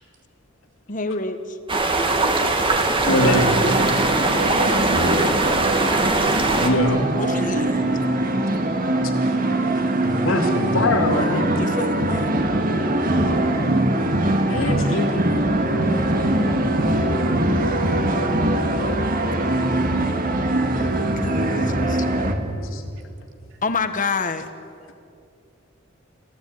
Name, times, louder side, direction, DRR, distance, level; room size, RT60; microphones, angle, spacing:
voice 1, 0.9-1.6 3.2-3.8 7.2-7.8 11.1-12.3 14.8-15.0 21.2-22.3 23.6-24.5, left 3 dB, 40° left, 9 dB, 1.4 m, -28 dB
sound 1, 1.7-6.7, right 2 dB, 25° right, 1.9 m, -21 dB
voice 2, 3.0-3.5 6.6-7.0 10.0-11.5 14.5-15.1 22.7-22.8, left 1 dB, 85° left, 3 dB, 2.9 m, -22 dB
sound 2, 3.1-22.3, right 1 dB, 45° right, 1.9 m, -22 dB
voice 3, 20.1-21.7 22.2-22.7, equal, 65° right, 3 dB, 3.0 m, -30 dB
25.5 x 15.5 x 9.6 m, 2.4 s
head